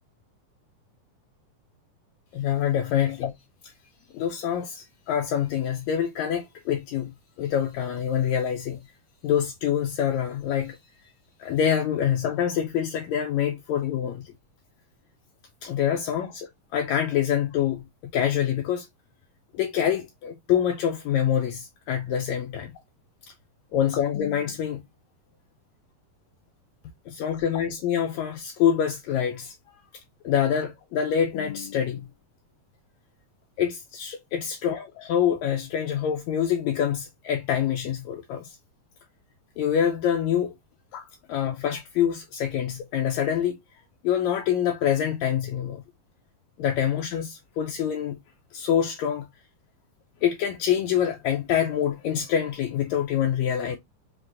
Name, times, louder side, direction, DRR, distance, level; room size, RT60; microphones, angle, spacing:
voice 1, 2.3-3.3 4.1-8.8 9.2-10.8 11.4-14.3 15.6-17.8 18.1-18.9 19.5-22.7 23.7-24.8 27.1-29.5 30.2-32.1 33.6-38.6 39.6-40.5 40.9-43.6 44.0-45.8 46.6-48.1 48.5-49.3 50.2-53.8, left 9 dB, 80° left, 1.7 m, -26 dB
5.8 x 3.0 x 2.4 m
omnidirectional pair, 3.7 m